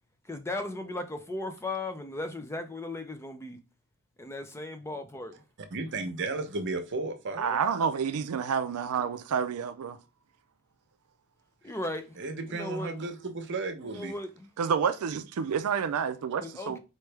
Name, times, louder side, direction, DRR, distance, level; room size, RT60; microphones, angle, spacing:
voice 1, 0.3-3.6 4.2-5.4 11.6-12.2 12.5-12.9 13.8-14.5 16.4-16.8, left 2 dB, 10° left, 0.4 m, -36 dB
voice 2, 5.7-7.6 12.2-14.1, right 3 dB, 55° right, 0.8 m, -34 dB
voice 3, 7.4-10.0 14.6-16.8, right 6 dB, 75° right, 0.4 m, -29 dB
4.5 x 3.2 x 3.3 m
head